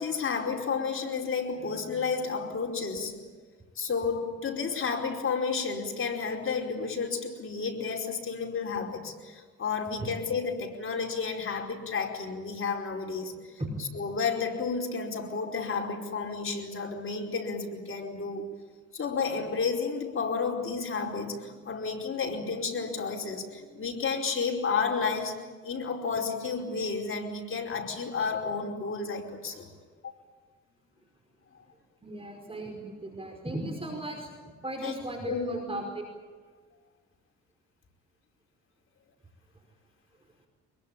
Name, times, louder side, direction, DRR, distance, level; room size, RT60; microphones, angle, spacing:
voice 1, 0.0-3.2 3.7-18.5 18.9-29.7 30.0-30.1 34.8-34.9 35.2-35.8, left 5 dB, 45° left, 1 dB, 4.9 m, -31 dB
voice 2, 13.3-13.7 32.0-34.3 34.6-35.8, right 1 dB, 20° right, 2 dB, 5.0 m, -37 dB
24.0 x 22.0 x 9.0 m, 1.5 s
cardioid pair, 90°, 30 cm